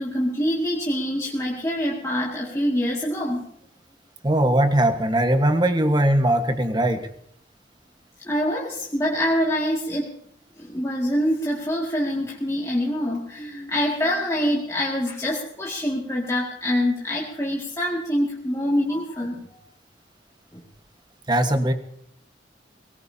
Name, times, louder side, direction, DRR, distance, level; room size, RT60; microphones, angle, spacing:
voice 1, 0.0-3.4 8.2-10.1 10.6-19.4 20.5-20.6, equal, 15° left, -4 dB, 2.2 m, -25 dB
voice 2, 4.2-7.1 21.3-21.7, right 1 dB, 25° right, 7 dB, 1.4 m, -20 dB
23.0 x 18.5 x 2.8 m, 0.66 s
head